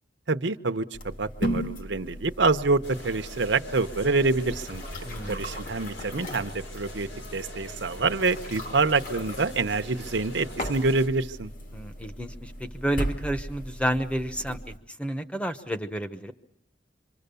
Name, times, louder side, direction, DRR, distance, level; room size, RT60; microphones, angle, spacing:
voice 1, 0.3-4.8 5.3-11.5, right 3 dB, 70° right, 9 dB, 0.9 m, -26 dB
sound 1, 0.9-14.8, equal, 45° left, 2.0 m, -37 dB
sound 2, 2.8-11.1, left 1 dB, 90° left, 5.5 m, -44 dB
voice 2, 5.0-5.4 11.7-14.7 15.0-16.3, right 1 dB, 5° left, 9 dB, 1.0 m, -30 dB
26.5 x 25.0 x 6.9 m, 0.80 s
head